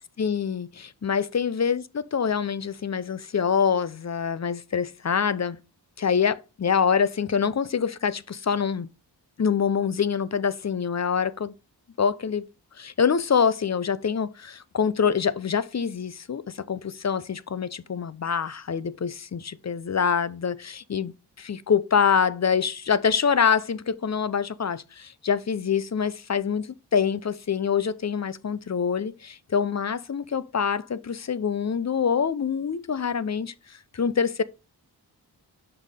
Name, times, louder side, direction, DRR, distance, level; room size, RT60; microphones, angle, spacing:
voice 1, 0.2-5.6 6.0-8.9 9.4-11.5 12.0-12.4 12.8-21.1 21.4-26.7 26.9-33.5 33.9-34.4, left 6 dB, 40° left, 0.6 m, -25 dB
6.1 x 5.6 x 3.4 m
wide cardioid pair, 80°, 41 cm